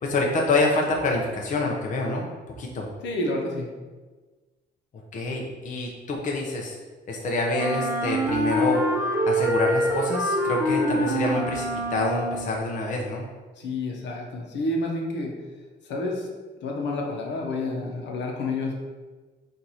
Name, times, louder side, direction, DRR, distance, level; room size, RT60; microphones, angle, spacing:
voice 1, 0.0-2.3 2.6-2.9 5.1-6.8 7.1-8.8 9.2-13.3, left 2 dB, 45° left, -1 dB, 0.6 m, -26 dB
voice 2, 3.0-3.7 13.6-15.3 15.8-16.3 16.6-18.7, left 2 dB, 80° left, -1 dB, 0.9 m, -29 dB
Wind instrument woodwind instrument, 7.5-12.6, equal, 15° right, 0.7 m, -25 dB
4.5 x 2.6 x 4.1 m, 1.3 s
cardioid pair, 115°, 18 cm